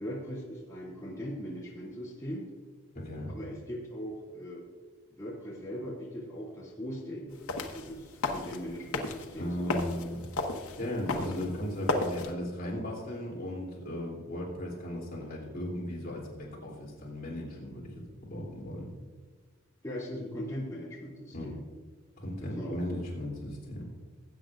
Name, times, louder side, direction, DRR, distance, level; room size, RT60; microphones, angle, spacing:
voice 1, 0.0-2.5 3.3-4.6 5.1-7.4 7.7-9.8 11.0-11.4 19.8-21.6 22.4-22.8, equal, 15° left, -8 dB, 2.6 m, -40 dB
voice 2, 2.9-3.3 9.4-10.2 10.8-18.8 21.3-21.5 22.2-23.8, left 1 dB, 40° left, -4 dB, 3.0 m, -36 dB
sound 1, 7.3-12.3, left 2 dB, 85° left, 1.2 m, -35 dB
19.5 x 9.0 x 2.5 m, 1.4 s
head